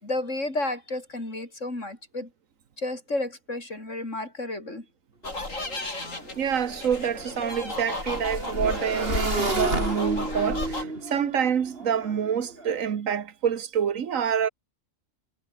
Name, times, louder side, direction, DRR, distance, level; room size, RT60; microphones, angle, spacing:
voice 1, 0.0-2.3 2.8-4.9, left 2 dB, 70° left, 5.8 m, -32 dB
sound 1, 5.2-10.8, left 2 dB, 90° left, 5.7 m, -33 dB
Motorcycle / Engine, 5.2-5.3 5.6-12.7, right 2 dB, 45° right, 4.2 m, -33 dB
voice 2, 6.4-14.5, right 8 dB, 90° right, 1.6 m, -27 dB
omnidirectional pair, 1.3 m